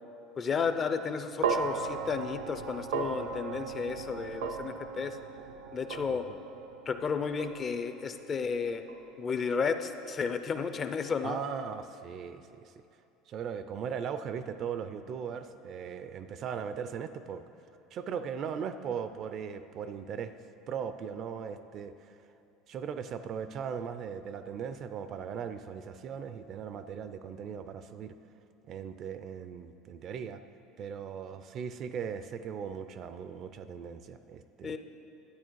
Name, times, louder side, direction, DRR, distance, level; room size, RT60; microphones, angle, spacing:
voice 1, 0.4-5.2 5.7-6.3 6.9-8.8 9.2-11.4 34.6-34.8, left 5 dB, 30° left, 9 dB, 0.5 m, -32 dB
sound 1, 1.4-9.7, right 5 dB, 90° right, 0.6 m, -37 dB
voice 2, 11.2-12.7 13.3-17.4 17.9-20.3 20.7-22.1 22.7-28.2 28.7-30.4 30.8-34.8, right 7 dB, 40° right, 11 dB, 0.4 m, -38 dB
11.0 x 8.6 x 4.6 m, 2.7 s
cardioid pair, 140°, 0 cm